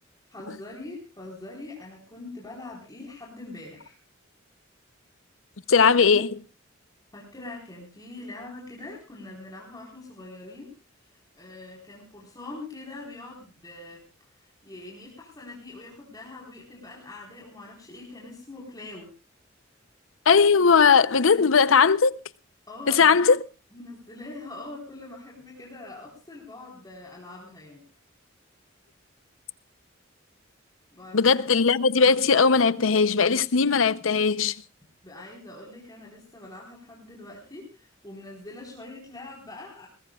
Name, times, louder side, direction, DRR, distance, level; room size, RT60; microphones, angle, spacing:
voice 1, 0.3-4.0 7.1-10.7 11.3-14.0 14.4-19.1 22.7-23.3 23.7-27.8 30.9-31.2 35.0-39.9, left 2 dB, 20° left, 4.3 m, -43 dB
voice 2, 5.7-6.4 20.3-22.2 22.9-23.4 31.1-34.6, left 5 dB, 85° left, 0.7 m, -19 dB
22.5 x 19.5 x 2.4 m
head